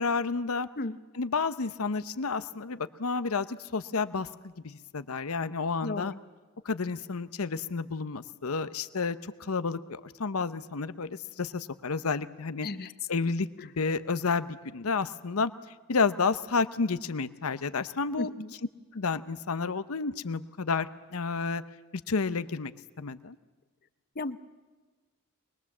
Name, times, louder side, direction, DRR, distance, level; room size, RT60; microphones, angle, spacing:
voice 1, 0.0-0.7 1.1-3.5 3.7-4.3 4.6-6.1 6.6-11.1 11.4-12.7 13.1-13.5 13.8-15.5 15.9-18.3 18.9-20.9 21.1-21.6 22.1-22.7 23.0-23.4, left 4 dB, 80° left, 13 dB, 0.8 m, -30 dB
voice 2, 5.8-6.2 12.6-12.9 18.2-18.5 24.2-24.4, left 2 dB, 45° left, 13 dB, 0.8 m, -34 dB
23.5 x 21.0 x 7.3 m, 1.3 s
head